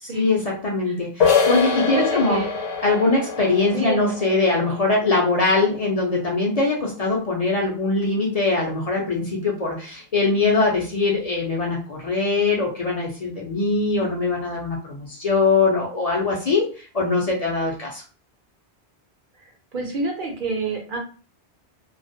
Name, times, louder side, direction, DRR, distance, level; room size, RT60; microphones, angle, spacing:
voice 1, 0.0-2.5 2.8-18.0, left 3 dB, 45° left, -2 dB, 0.5 m, -22 dB
sound 1, 1.2-6.7, left 6 dB, 85° left, 0.9 m, -25 dB
voice 2, 1.7-2.5 3.7-4.0 19.7-21.0, right 3 dB, 55° right, 2 dB, 0.7 m, -28 dB
2.3 x 2.1 x 2.5 m, 0.37 s
omnidirectional pair, 1.1 m